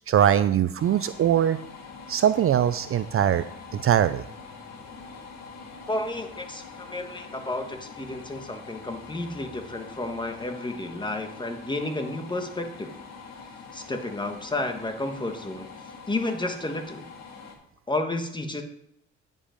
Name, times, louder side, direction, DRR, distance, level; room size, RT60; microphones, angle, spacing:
voice 1, 0.0-1.6 2.1-3.4 3.7-4.2, right 10 dB, 45° right, 13 dB, 0.4 m, -21 dB
sound 1, 0.8-17.5, left 5 dB, 60° left, 1.9 m, -44 dB
voice 2, 5.9-12.9 13.7-15.7 16.1-17.1 17.9-18.6, left 2 dB, 15° left, 6 dB, 1.3 m, -31 dB
9.8 x 5.4 x 5.1 m, 0.75 s
cardioid pair, 90°, 30 cm